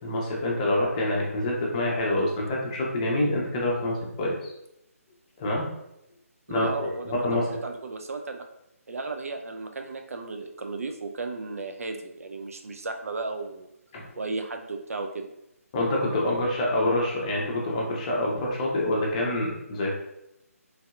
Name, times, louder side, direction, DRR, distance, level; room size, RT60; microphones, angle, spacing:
voice 1, 0.0-4.5 5.4-5.7 6.5-7.5 13.9-14.1 15.7-20.0, left 1 dB, 25° left, -2 dB, 0.7 m, -26 dB
voice 2, 6.5-8.5 8.9-13.7 14.2-15.3, right 3 dB, 65° right, 5 dB, 0.4 m, -34 dB
3.2 x 2.7 x 2.4 m, 0.83 s
figure-of-eight pair, 150°, 8 cm